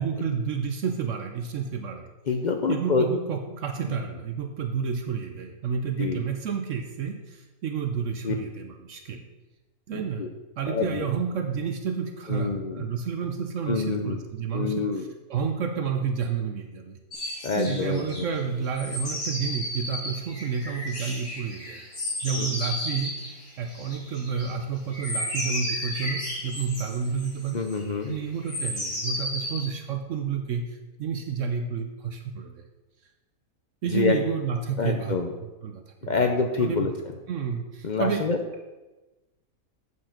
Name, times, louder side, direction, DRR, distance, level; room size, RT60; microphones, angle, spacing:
voice 1, 0.0-2.1 2.7-9.2 9.9-10.2 10.6-17.0 17.5-21.8 22.2-23.2 23.6-27.6 28.1-32.6 33.8-35.3 35.6-36.3 36.6-36.9 37.3-38.2, right 6 dB, 65° right, 5 dB, 0.9 m, -30 dB
voice 2, 2.3-3.1 3.8-4.0 6.0-6.2 8.2-8.3 9.9-10.3 10.7-11.1 12.3-12.8 13.7-14.2 14.5-15.0 17.4-18.3 22.4-22.5 27.5-28.2 33.9-34.2 34.8-35.3 36.1-36.9 37.8-38.4, left 4 dB, 60° left, 4 dB, 0.4 m, -27 dB
sound 1, 17.1-18.4 18.8-24.5 24.9-27.9 28.4-29.6, left 1 dB, 40° left, 3.1 m, -33 dB
8.3 x 4.7 x 5.8 m, 1.1 s
omnidirectional pair, 1.6 m